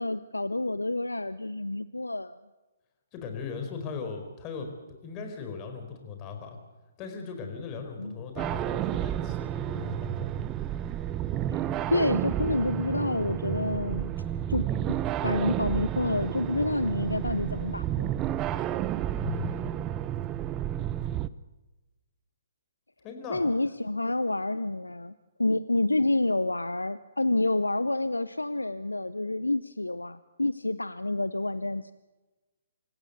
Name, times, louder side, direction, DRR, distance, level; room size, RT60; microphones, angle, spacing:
voice 1, 0.0-2.4 8.0-8.1 11.9-14.1 14.5-14.9 15.2-18.1 23.3-25.1 25.4-31.9, left 2 dB, 90° left, 15 dB, 0.7 m, -28 dB
voice 2, 3.1-4.7 5.0-6.6 7.0-10.3 19.2-19.8 23.0-23.4, left 5 dB, 25° left, 5 dB, 4.8 m, -38 dB
sound 1, 8.4-21.3, right 11 dB, 20° right, 0.7 m, -31 dB
27.0 x 15.5 x 8.2 m, 1.1 s
figure-of-eight pair, 130°, 0 cm